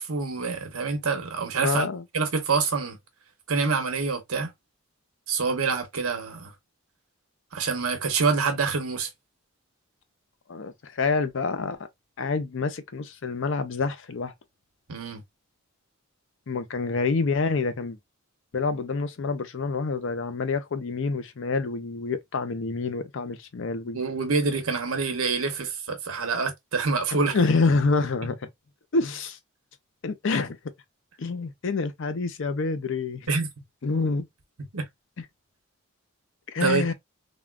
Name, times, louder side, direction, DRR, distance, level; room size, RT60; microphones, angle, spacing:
voice 1, 0.0-1.9 2.1-3.0 3.5-4.5 5.3-6.5 7.5-9.1 14.9-15.2 23.9-27.4 33.3-33.5 34.7-34.8 36.6-36.8, right 4 dB, 80° right, 1.0 m, -26 dB
voice 2, 1.6-2.0 10.5-11.9 12.2-14.3 16.5-18.0 18.5-24.0 27.3-28.5 28.9-29.4 30.0-30.6 31.2-33.3 33.8-34.3 35.2-35.3 36.5-36.9, left 4 dB, 60° left, 0.5 m, -27 dB
3.5 x 2.3 x 2.2 m
head